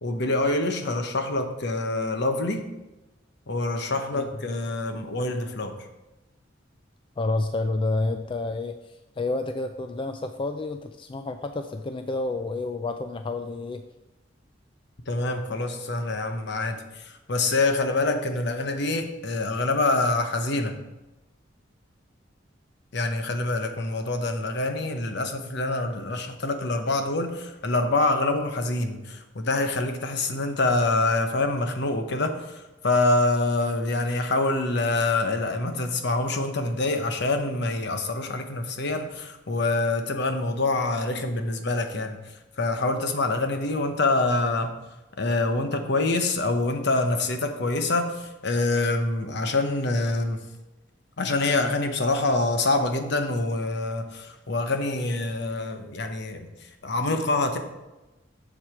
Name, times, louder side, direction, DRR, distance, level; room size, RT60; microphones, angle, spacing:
voice 1, 0.0-2.7 3.5-5.8 15.1-20.7 22.9-42.2 42.6-44.8 45.2-50.4 51.2-56.5 56.8-57.6, left 2 dB, 60° left, 6 dB, 1.0 m, -26 dB
voice 2, 7.2-13.8, left 2 dB, 25° left, 7 dB, 0.4 m, -29 dB
7.5 x 7.3 x 4.8 m, 1.0 s
head